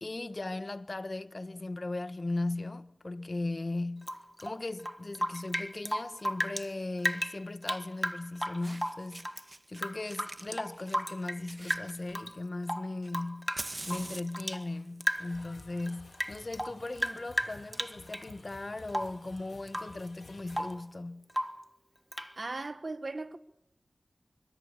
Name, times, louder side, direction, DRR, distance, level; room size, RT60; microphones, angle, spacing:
voice 1, 0.0-4.1 4.4-9.3 9.7-13.5 13.9-21.3, left 2 dB, 50° left, 1.3 m, -37 dB
Rain / Drip, 4.0-6.7 7.0-9.4 9.8-11.4 11.7-12.3 12.6-14.7 15.0-15.5 15.8-18.3 18.9-19.2 19.7-20.0 20.3-20.8 21.3-21.7 22.1-22.3, equal, ahead, 1.4 m, -35 dB
Fire, 5.5-5.8 7.2-7.3 8.2-8.3 8.6-9.8 10.1-12.5 13.0-20.7, right 1 dB, 35° right, 2.1 m, -48 dB
sound 1, 15.2-20.8, left 3 dB, 90° left, 3.1 m, -54 dB
voice 2, 22.3-23.4, right 3 dB, 60° right, 1.5 m, -37 dB
25.5 x 25.0 x 7.5 m
cardioid pair, 45°, 0 cm